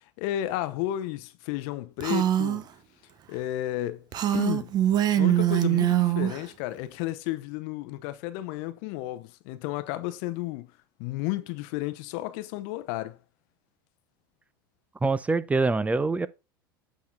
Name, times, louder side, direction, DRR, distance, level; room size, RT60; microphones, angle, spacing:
voice 1, 0.0-2.7 3.3-4.1 4.3-4.7 5.2-10.7 11.0-13.2, left 14 dB, 60° left, 0.7 m, -32 dB
Female speech woman speaking, 2.0-2.6 4.1-6.4, right 12 dB, 35° right, 0.9 m, -23 dB
voice 2, 15.0-16.3, right 3 dB, 10° right, 0.5 m, -24 dB
8.5 x 3.9 x 3.8 m
hypercardioid pair, 85°, 11 cm